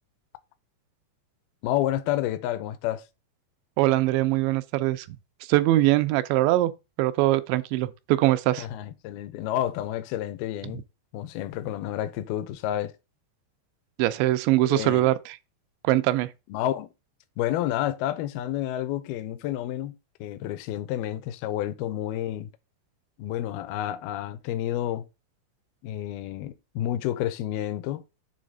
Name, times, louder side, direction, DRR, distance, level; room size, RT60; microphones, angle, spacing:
voice 1, 1.6-3.1 8.6-10.8 11.1-12.9 14.6-15.1 16.5-16.9 17.4-20.0 20.2-22.5 23.2-25.1 25.8-28.0, left 12 dB, 80° left, 2.3 m, -30 dB
voice 2, 3.8-5.1 5.5-6.7 7.0-8.7 10.6-10.7 14.0-15.4 15.8-16.3, right 16 dB, 90° right, 2.9 m, -22 dB
7.5 x 3.5 x 6.4 m
omnidirectional pair, 5.0 m